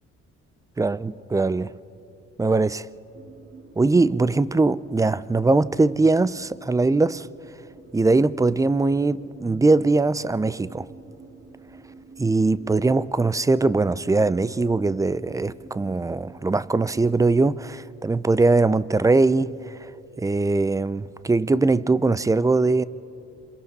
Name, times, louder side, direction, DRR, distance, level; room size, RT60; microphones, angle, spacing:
voice 1, 0.8-1.7 2.4-2.9 3.8-7.3 7.9-10.9 12.2-19.9 20.2-22.8, right 3 dB, 10° right, 0.4 m, -21 dB
sound 1, 3.1-17.6, right 4 dB, 35° right, 2.3 m, -49 dB
27.5 x 26.5 x 4.1 m
cardioid pair, 90°, 30 cm